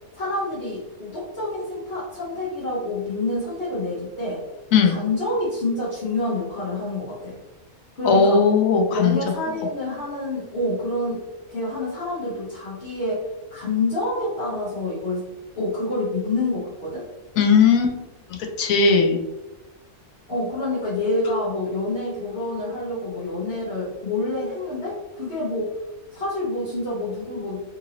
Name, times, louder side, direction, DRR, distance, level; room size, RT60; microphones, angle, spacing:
voice 1, 0.1-4.4 4.8-7.4 7.9-8.4 8.9-11.2 11.5-13.2 13.5-15.2 15.6-17.1 20.3-25.7 26.1-27.6, left 2 dB, 50° left, -9 dB, 1.1 m, -27 dB
voice 2, 4.7-5.0 8.0-9.2 17.4-17.9 18.6-19.2, left 5 dB, 80° left, 4 dB, 1.0 m, -17 dB
3.8 x 2.7 x 2.8 m, 1.0 s
omnidirectional pair, 1.4 m